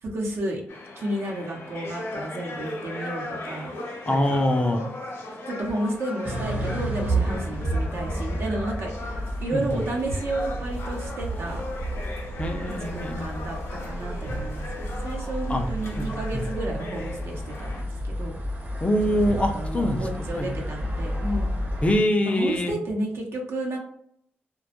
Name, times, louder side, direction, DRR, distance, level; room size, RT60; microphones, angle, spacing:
voice 1, 0.0-0.6 1.0-3.7 4.1-4.4 5.5-11.6 12.8-13.6 13.8-18.7 19.0-21.6 22.2-23.8, right 1 dB, 70° right, 0 dB, 0.7 m, -32 dB
sound 1, 0.7-17.8, left 2 dB, 70° left, 0.7 m, -38 dB
voice 2, 4.1-4.8 9.5-9.8 12.4-13.3 15.5-15.6 16.0-16.1 18.8-20.5 21.8-22.8, left 1 dB, 25° left, 3 dB, 0.4 m, -24 dB
sound 2, 6.2-22.0, right 1 dB, 35° right, 0.8 m, -31 dB
2.2 x 2.0 x 2.8 m, 0.70 s
cardioid pair, 75°, 5 cm